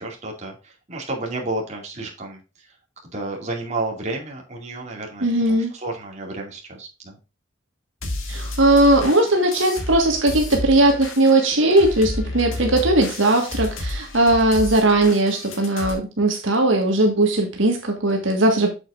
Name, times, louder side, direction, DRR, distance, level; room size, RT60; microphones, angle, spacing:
voice 1, 0.0-2.7 3.1-7.2, right 2 dB, 35° right, 0 dB, 2.4 m, -31 dB
voice 2, 5.2-5.7 8.3-18.7, right 1 dB, 70° right, 2 dB, 1.7 m, -18 dB
Chill Liquid Trap Loop, 8.0-15.9, left 2 dB, 75° left, 2.2 m, -31 dB
7.9 x 7.4 x 2.6 m, 0.30 s
head